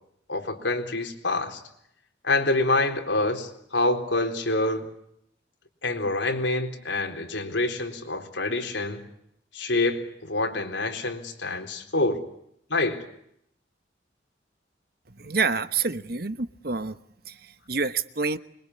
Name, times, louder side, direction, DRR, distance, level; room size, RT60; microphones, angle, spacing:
voice 1, 0.3-1.6 2.2-4.9 5.8-9.0 9.5-12.2 12.7-13.0, left 2 dB, 75° left, 4 dB, 4.1 m, -26 dB
voice 2, 15.2-17.0 17.3-18.4, right 4 dB, 50° right, 12 dB, 1.2 m, -28 dB
25.5 x 23.0 x 9.8 m, 0.74 s
head